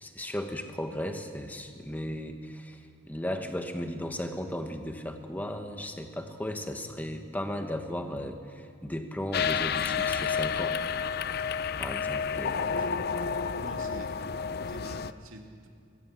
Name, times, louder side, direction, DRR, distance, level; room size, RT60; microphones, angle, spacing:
voice 1, 0.0-10.8 11.8-12.5, left 1 dB, 10° left, 5 dB, 1.2 m, -36 dB
sound 1, 9.3-15.1, left 6 dB, 50° left, 0.5 m, -30 dB
voice 2, 12.4-13.0 13.5-14.2 14.6-15.7, right 1 dB, 75° right, 2 dB, 2.4 m, -46 dB
23.0 x 16.0 x 7.4 m, 2.4 s
head